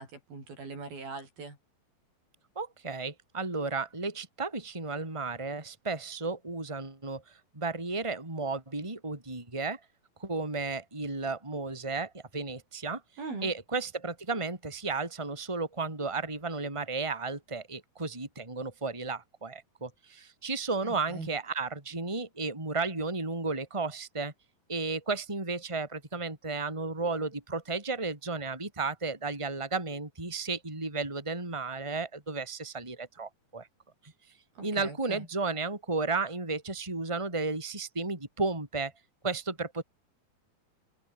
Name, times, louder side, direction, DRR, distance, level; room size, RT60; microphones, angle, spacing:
voice 1, 0.0-1.6 13.2-13.5 20.8-21.3 34.6-35.3, right 4 dB, 80° right, 9.9 m, -41 dB
voice 2, 2.6-9.8 10.2-13.0 13.4-24.3 24.7-33.7 34.0-34.1 34.6-38.9 39.2-39.8, right 3 dB, 10° right, 3.7 m, -33 dB
omnidirectional pair, 4.2 m